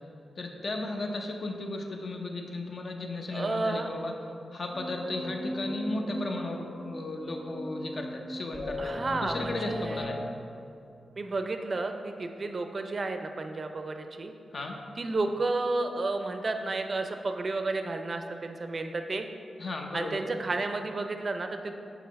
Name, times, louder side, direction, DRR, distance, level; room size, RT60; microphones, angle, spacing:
voice 1, 0.4-4.1 4.5-8.8 9.1-10.2 14.5-14.8 19.6-20.2, left 2 dB, 55° left, 2 dB, 0.8 m, -35 dB
voice 2, 3.3-3.9 8.8-10.0 11.2-14.3 15.0-19.3 19.9-21.7, right 3 dB, 40° right, 6 dB, 0.4 m, -32 dB
sound 1, 4.7-10.2, equal, 30° left, 1.5 m, -38 dB
5.6 x 4.7 x 5.2 m, 2.6 s
wide cardioid pair, 100°, 0 cm